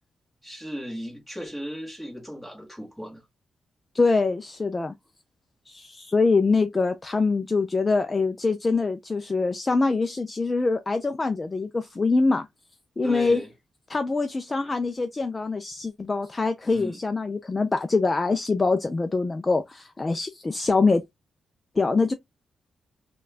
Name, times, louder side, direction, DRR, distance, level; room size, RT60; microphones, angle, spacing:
voice 1, 0.4-3.2 13.0-13.5 16.7-17.0, equal, ahead, 1.5 m, -36 dB
voice 2, 3.9-4.9 5.7-12.5 13.0-13.4 13.9-21.0 21.8-22.1, left 3 dB, 20° left, 0.3 m, -24 dB
4.4 x 2.3 x 2.4 m
wide cardioid pair, 150°, 0 cm